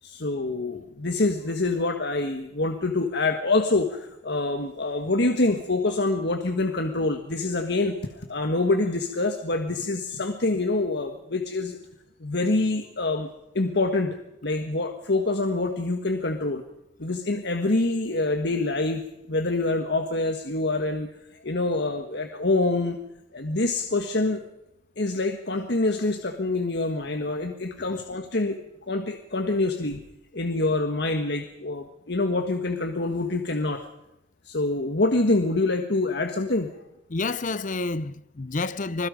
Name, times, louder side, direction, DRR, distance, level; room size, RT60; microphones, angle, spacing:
voice 1, 0.0-11.8 12.2-16.6 17.0-19.0 19.3-23.0 23.3-24.4 25.0-28.6 28.9-30.0 30.3-33.8 34.4-36.7, left 2 dB, 65° left, 1.6 m, -26 dB
voice 2, 37.1-39.1, left 3 dB, 45° left, 0.8 m, -29 dB
26.0 x 21.5 x 5.3 m
head